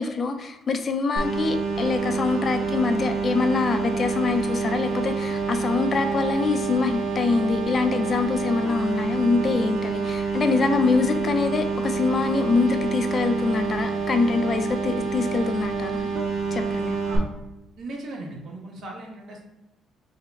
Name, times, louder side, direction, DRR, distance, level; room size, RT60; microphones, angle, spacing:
voice 1, 0.0-16.1 16.5-17.0, left 4 dB, 40° left, 7 dB, 0.4 m, -24 dB
sound 1, 1.2-17.2, right 4 dB, 85° right, 0.8 m, -27 dB
voice 2, 17.8-19.4, right 2 dB, 60° right, -1 dB, 1.2 m, -38 dB
5.2 x 2.1 x 3.4 m, 0.96 s
cardioid pair, 120°, 0 cm